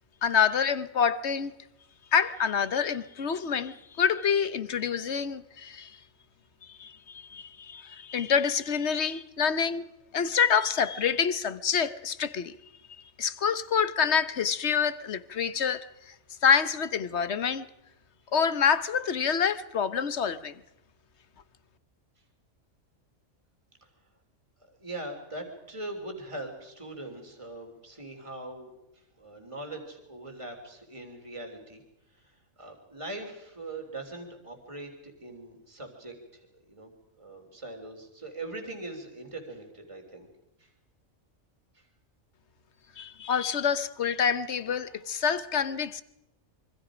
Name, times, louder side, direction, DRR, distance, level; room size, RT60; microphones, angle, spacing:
voice 1, 0.2-1.5 2.1-5.9 6.8-9.9 10.1-12.5 13.2-16.1 16.4-17.7 18.3-20.6 43.0-46.0, left 7 dB, 60° left, 1.2 m, -27 dB
voice 2, 24.6-31.8 32.1-36.9 37.2-40.3 40.6-40.7 41.7-41.9, right 2 dB, 25° right, 3.5 m, -41 dB
26.5 x 24.5 x 5.0 m
omnidirectional pair, 1.3 m